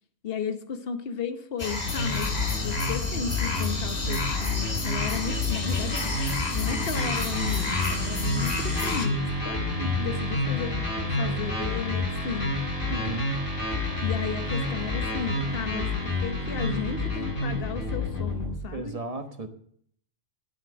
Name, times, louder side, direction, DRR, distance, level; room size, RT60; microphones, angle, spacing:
voice 1, 0.2-9.6 10.0-10.9 11.2-12.6 13.0-13.2 14.0-18.9, left 7 dB, 50° left, 8 dB, 1.2 m, -34 dB
sound 1, 1.6-9.1, left 2 dB, 30° left, 1.5 m, -30 dB
sound 2, 1.8-18.6, left 2 dB, 85° left, 6.6 m, -29 dB
voice 2, 9.8-10.1 12.9-13.3 18.7-19.5, right 2 dB, 30° right, 6 dB, 1.1 m, -34 dB
12.0 x 7.4 x 6.3 m, 0.63 s
omnidirectional pair, 1.4 m